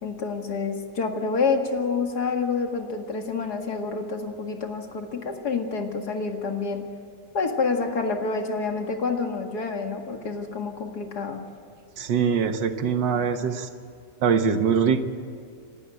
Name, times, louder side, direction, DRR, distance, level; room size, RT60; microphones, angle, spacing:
voice 1, 0.0-6.9 7.3-11.4, left 4 dB, 65° left, 4 dB, 2.5 m, -28 dB
voice 2, 12.0-13.7 14.2-15.0, right 6 dB, 85° right, 8 dB, 1.9 m, -23 dB
28.0 x 12.0 x 9.0 m, 2.2 s
omnidirectional pair, 1.9 m